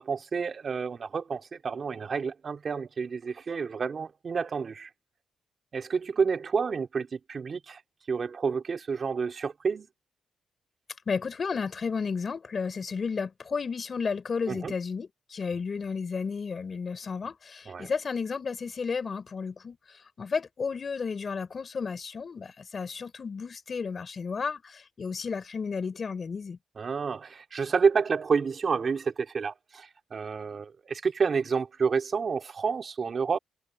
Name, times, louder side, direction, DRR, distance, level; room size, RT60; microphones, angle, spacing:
voice 1, 0.0-4.9 5.7-7.8 8.1-9.9 14.5-14.7 17.6-17.9 26.8-33.4, right 5 dB, 45° right, 3.3 m, -29 dB
voice 2, 11.1-19.8 20.2-26.6, left 5 dB, 40° left, 4.0 m, -33 dB
cardioid pair, 110°, 0 cm